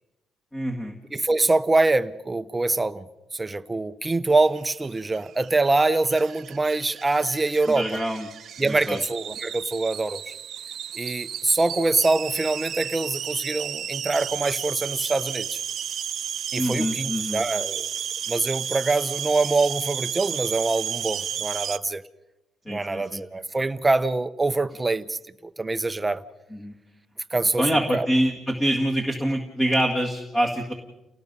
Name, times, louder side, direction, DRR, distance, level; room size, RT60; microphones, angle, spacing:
voice 1, 0.5-0.9 7.8-8.3 8.7-9.0 16.5-17.4 22.7-23.2 26.5-26.7 27.6-30.7, equal, 15° left, 2.0 m, -25 dB
voice 2, 1.1-3.0 3.3-8.0 8.6-10.3 10.9-15.6 16.5-17.9 18.3-22.0 22.7-26.2 27.3-27.7 27.9-28.1, right 3 dB, 15° right, 0.8 m, -24 dB
sound 1, 4.4-21.8, right 9 dB, 55° right, 0.7 m, -33 dB
30.0 x 18.5 x 5.5 m
cardioid pair, 115°, 0 cm